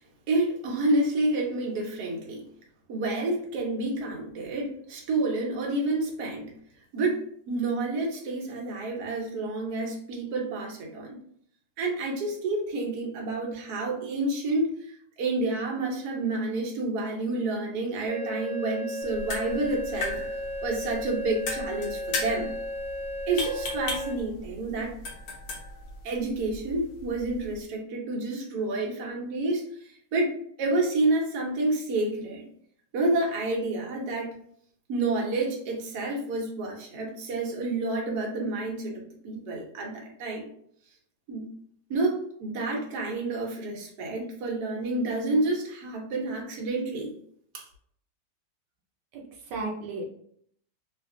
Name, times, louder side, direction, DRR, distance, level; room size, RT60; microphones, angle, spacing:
voice 1, 0.3-2.4 2.9-6.5 6.9-11.2 11.8-20.2 20.6-22.5 23.3-24.9 26.0-32.5 32.9-34.3 34.9-40.4 41.3-41.5 41.9-47.1 47.5-47.7, right 2 dB, 65° right, -1 dB, 1.3 m, -29 dB
sound 1, 18.1-24.1, left 1 dB, 20° right, 0.9 m, -35 dB
sound 2, 19.0-27.6, left 2 dB, 65° left, 1.1 m, -37 dB
voice 2, 49.1-50.0, right 3 dB, 85° right, -1 dB, 1.3 m, -34 dB
3.2 x 2.5 x 2.5 m, 0.64 s
omnidirectional pair, 1.9 m